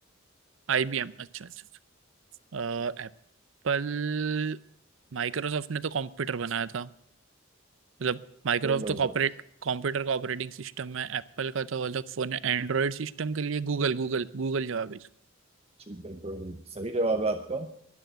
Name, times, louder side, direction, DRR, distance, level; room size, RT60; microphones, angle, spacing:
voice 1, 0.7-1.5 2.5-3.1 3.6-4.6 5.1-6.9 8.0-8.2 8.4-9.3 9.6-15.1, right 6 dB, 70° right, 18 dB, 0.6 m, -30 dB
voice 2, 8.6-9.1 15.9-17.7, right 2 dB, 30° right, 6 dB, 0.8 m, -31 dB
11.0 x 10.5 x 9.0 m, 0.69 s
head